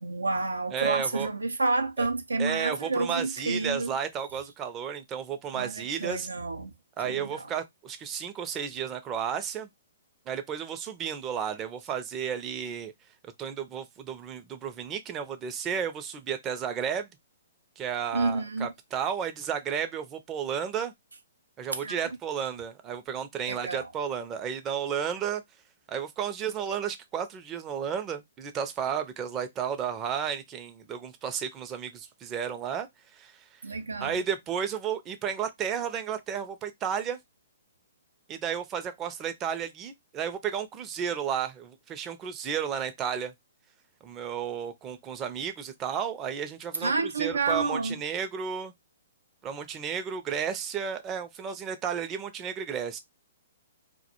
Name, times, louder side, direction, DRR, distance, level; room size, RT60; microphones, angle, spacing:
voice 1, 0.0-3.9 5.5-6.7 7.0-7.5 18.1-18.7 21.8-22.0 23.5-23.9 33.6-34.2 46.8-48.0, right 3 dB, 90° right, 0.4 m, -29 dB
voice 2, 0.7-1.3 2.0-2.1 2.4-6.3 7.0-9.7 10.3-12.9 13.4-17.1 17.8-20.9 21.6-25.4 25.9-32.9 33.1-33.4 34.0-37.2 38.3-43.3 44.0-46.9 47.2-48.7 49.4-53.0, right 8 dB, 25° right, 0.4 m, -33 dB
2.2 x 2.1 x 2.8 m
hypercardioid pair, 130°, 0 cm